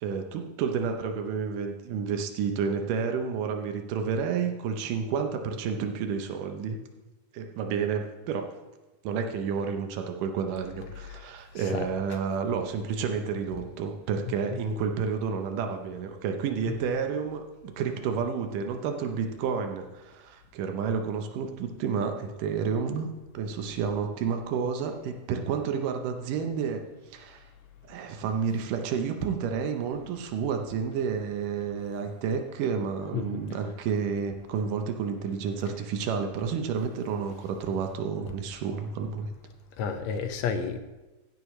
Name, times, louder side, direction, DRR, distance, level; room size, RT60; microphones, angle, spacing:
voice 1, 0.0-6.8 7.3-8.5 9.0-23.1 23.3-26.8 27.1-27.4 27.9-39.3, right 6 dB, 85° right, 5 dB, 2.5 m, -30 dB
voice 2, 11.5-11.9 16.7-16.8 33.1-33.4 39.8-40.8, left 6 dB, 70° left, 7 dB, 1.8 m, -31 dB
15.5 x 9.7 x 3.2 m, 1.1 s
omnidirectional pair, 3.7 m